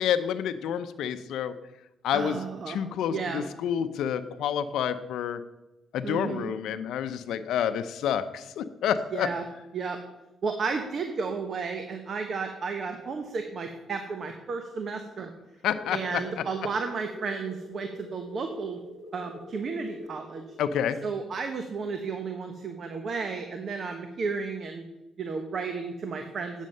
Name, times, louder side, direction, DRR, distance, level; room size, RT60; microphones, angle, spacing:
voice 1, 0.0-1.5 2.0-2.4 2.7-5.4 5.9-9.3 15.6-16.2 20.6-21.0, left 9 dB, 80° left, 10 dB, 0.6 m, -29 dB
voice 2, 2.1-3.4 6.0-6.5 9.1-9.4 9.7-10.0 10.4-15.3 15.9-18.8 19.1-20.4 21.0-24.8 25.2-26.7, right 5 dB, 50° right, 6 dB, 1.0 m, -33 dB
sound 1, 15.7-24.0, left 2 dB, 30° left, 2.0 m, -46 dB
9.2 x 7.3 x 5.3 m, 0.97 s
cardioid pair, 90°, 0 cm